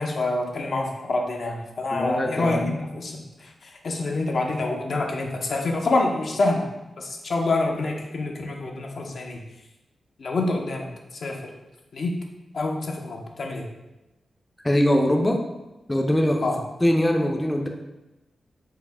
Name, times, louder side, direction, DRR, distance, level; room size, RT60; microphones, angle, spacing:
voice 1, 0.0-6.7 7.0-9.4 10.2-10.9 11.1-11.5 11.9-12.2 12.5-13.7 16.4-16.6, left 2 dB, 65° left, 0 dB, 0.6 m, -27 dB
voice 2, 1.9-2.7 14.6-15.4 15.9-16.4 16.8-17.7, left 1 dB, 15° left, 1 dB, 0.5 m, -22 dB
4.6 x 2.0 x 3.4 m, 1.0 s
cardioid pair, 55°, 0 cm